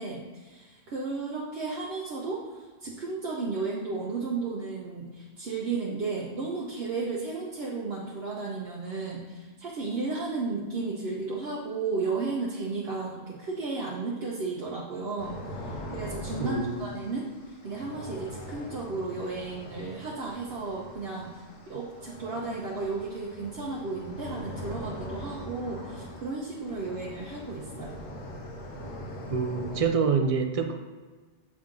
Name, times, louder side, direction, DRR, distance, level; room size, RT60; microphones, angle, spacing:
voice 1, 0.0-21.3 21.7-28.0, right 3 dB, 65° right, -4 dB, 1.0 m, -34 dB
sound 1, 15.2-29.8, equal, 90° left, 1.3 m, -41 dB
voice 2, 16.4-16.9 29.3-30.7, right 5 dB, 50° right, 5 dB, 0.4 m, -26 dB
7.3 x 3.7 x 3.7 m, 1.4 s
omnidirectional pair, 1.1 m